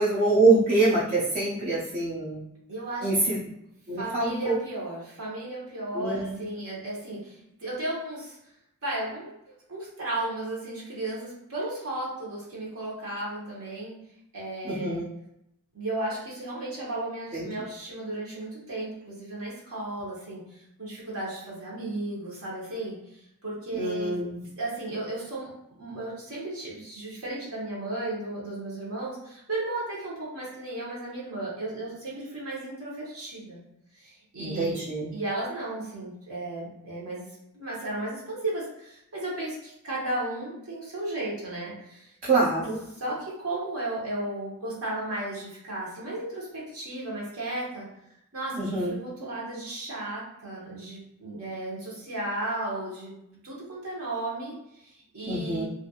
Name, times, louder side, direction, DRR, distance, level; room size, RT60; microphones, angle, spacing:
voice 1, 0.0-2.4 3.0-3.4 3.9-4.6 5.9-6.4 14.6-15.1 17.3-17.5 23.7-24.4 34.4-35.1 42.2-42.8 48.5-49.0 55.3-55.6, right 2 dB, 40° right, -8 dB, 0.6 m, -25 dB
voice 2, 2.7-3.1 4.0-8.4 8.8-9.4 9.7-14.0 14.3-15.1 15.7-23.0 23.4-24.2 24.6-25.5 25.8-33.6 33.9-34.7 35.1-37.3 37.5-42.1 42.9-47.9 48.3-53.1 53.4-55.6, right 2 dB, 65° right, -6 dB, 1.0 m, -34 dB
2.8 x 2.5 x 2.8 m, 0.81 s
head